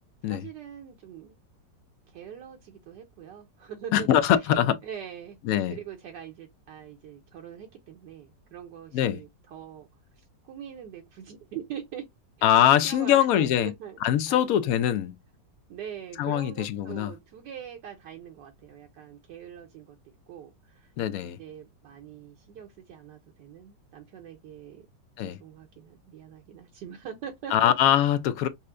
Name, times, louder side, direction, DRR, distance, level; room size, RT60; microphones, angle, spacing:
voice 1, 0.2-1.4 2.1-4.1 4.4-5.4 5.7-9.9 10.2-12.1 12.4-14.0 14.3-14.8 15.7-20.0 20.3-20.9 21.2-24.9 25.2-27.7, right 9 dB, 75° right, 1.3 m, -43 dB
voice 2, 3.9-4.8 5.5-5.7 8.9-9.2 12.4-13.7 14.0-15.1 16.2-17.1 21.0-21.4 25.2-25.4 27.5-28.5, left 11 dB, 70° left, 0.8 m, -22 dB
5.5 x 2.1 x 2.5 m
omnidirectional pair, 1.9 m